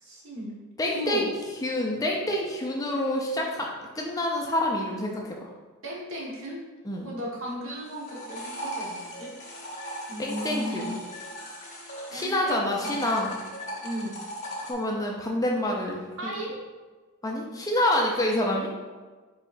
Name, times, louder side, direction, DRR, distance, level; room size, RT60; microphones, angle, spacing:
voice 1, 0.0-0.6 0.9-1.3 5.8-6.6 7.0-9.3 10.1-10.9 12.1-12.9 13.8-14.2 16.2-16.6, equal, 65° right, -5 dB, 1.2 m, -35 dB
voice 2, 0.8-1.3 1.6-3.7 3.9-5.3 6.9-7.1 10.2-10.9 12.1-13.3 14.7-16.3 17.2-18.7, left 1 dB, 15° left, -1 dB, 0.4 m, -27 dB
sound 1, 7.8-12.4 12.7-14.7, equal, 30° left, 0.9 m, -38 dB
4.8 x 3.8 x 2.5 m, 1.3 s
head